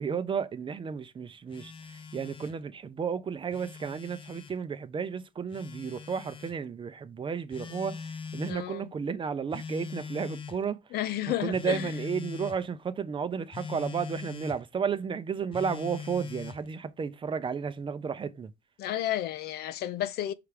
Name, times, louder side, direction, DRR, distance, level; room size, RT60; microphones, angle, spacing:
voice 1, 0.0-10.8 11.4-18.5, right 6 dB, 30° right, 0.6 m, -33 dB
Telephone, 1.5-2.6 3.4-4.6 5.5-6.6 7.5-8.6 9.5-10.6 11.5-12.6 13.5-14.6 15.5-16.7, left 6 dB, 30° left, 0.7 m, -41 dB
voice 2, 8.5-8.9 10.9-11.9 18.8-20.3, left 13 dB, 70° left, 0.6 m, -32 dB
5.7 x 3.4 x 5.0 m
cardioid pair, 110°, 17 cm